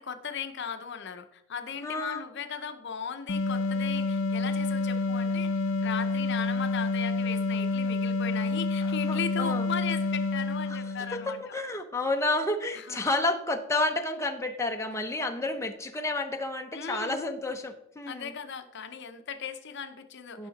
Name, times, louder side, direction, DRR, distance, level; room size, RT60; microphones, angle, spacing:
voice 1, 0.0-11.5 12.7-13.0 16.7-17.2 18.1-20.5, left 7 dB, 55° left, 8 dB, 0.7 m, -37 dB
voice 2, 1.8-2.2 9.1-9.7 11.1-18.3 20.4-20.5, left 2 dB, 15° left, 4 dB, 0.8 m, -30 dB
sound 1, 3.3-11.4, left 3 dB, 90° left, 0.9 m, -28 dB
16.0 x 5.7 x 4.1 m, 0.76 s
head